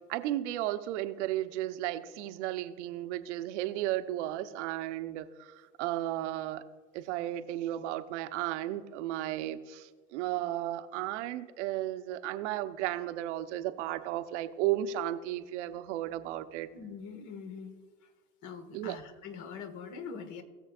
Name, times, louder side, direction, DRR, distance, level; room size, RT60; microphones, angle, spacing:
voice 1, 0.1-6.6 6.9-16.7 18.7-19.0, right 13 dB, 65° right, 10 dB, 0.8 m, -34 dB
voice 2, 16.7-17.8 18.0-18.1 18.4-20.4, left 6 dB, 50° left, 8 dB, 1.6 m, -43 dB
20.0 x 7.1 x 2.4 m, 1.5 s
hypercardioid pair, 80°, 38 cm